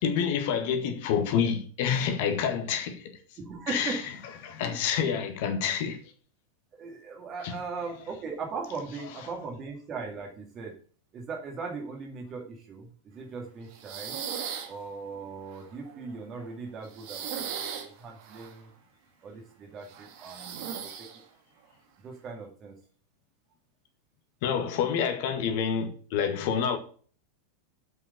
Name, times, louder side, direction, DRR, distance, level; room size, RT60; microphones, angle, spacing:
voice 1, 0.0-3.2 3.7-4.0 4.4-6.0 7.4-7.5 24.4-26.8, left 7 dB, 50° left, 1.8 m, -28 dB
voice 2, 3.4-4.1 4.6-5.1 6.7-10.8 11.1-14.2 14.7-18.7 19.2-21.2 22.0-22.8, right 4 dB, 30° right, 2.4 m, -39 dB
sound 1, 13.7-14.7 15.5-16.5 16.8-18.6 19.9-21.2, right 8 dB, 45° right, 1.8 m, -37 dB
7.6 x 6.2 x 6.6 m
figure-of-eight pair, 90°, 0 cm